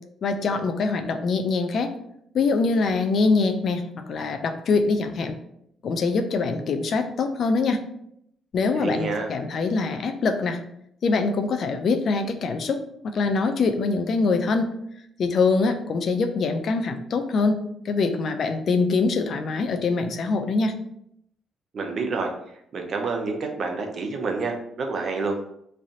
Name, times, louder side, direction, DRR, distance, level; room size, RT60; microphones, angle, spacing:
voice 1, 0.2-1.9 2.3-5.4 5.8-7.8 8.5-10.6 11.0-14.7 15.2-17.6 17.8-20.7, left 4 dB, 60° left, 7 dB, 0.5 m, -24 dB
voice 2, 8.8-9.3 21.7-22.3 22.7-25.4, right 4 dB, 50° right, 3 dB, 0.7 m, -28 dB
3.3 x 2.6 x 3.8 m, 0.73 s
cardioid pair, 90°, 0 cm